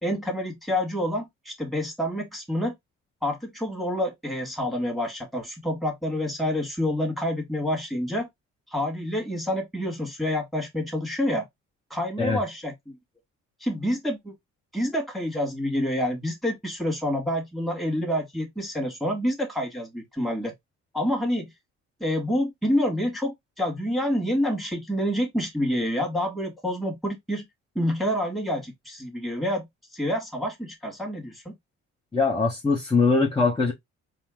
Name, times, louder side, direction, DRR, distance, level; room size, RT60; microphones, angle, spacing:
voice 1, 0.0-2.7 3.2-8.3 8.7-11.5 11.9-13.0 13.6-14.3 14.7-20.5 20.9-21.5 22.0-27.5 27.8-29.7 29.9-31.5, equal, ahead, 2.0 m, -28 dB
voice 2, 32.1-33.7, left 4 dB, 15° left, 1.3 m, -22 dB
4.3 x 2.3 x 3.8 m
cardioid pair, 90°, 30 cm